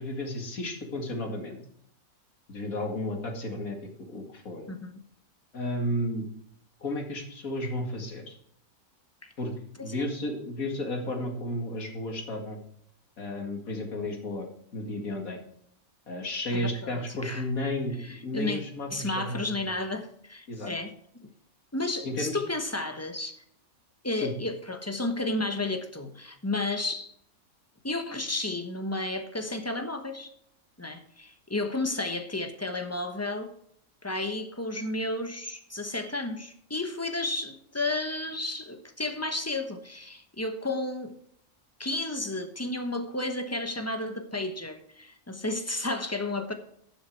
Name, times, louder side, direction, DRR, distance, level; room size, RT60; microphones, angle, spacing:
voice 1, 0.0-1.6 2.5-4.7 5.5-6.3 6.8-8.4 9.4-9.5 9.8-12.6 13.2-14.5 14.7-15.4 16.1-19.4 19.6-19.8 20.5-20.7 22.0-22.4 24.2-24.3, left 1 dB, 70° left, 2.6 m, -33 dB
voice 2, 16.5-17.4 18.0-18.6 18.9-20.9 21.7-23.4 24.0-27.1 27.8-30.3 30.8-33.5 34.0-41.1 41.8-46.5, left 2 dB, 10° left, 1.0 m, -32 dB
11.5 x 7.6 x 4.6 m
omnidirectional pair, 1.5 m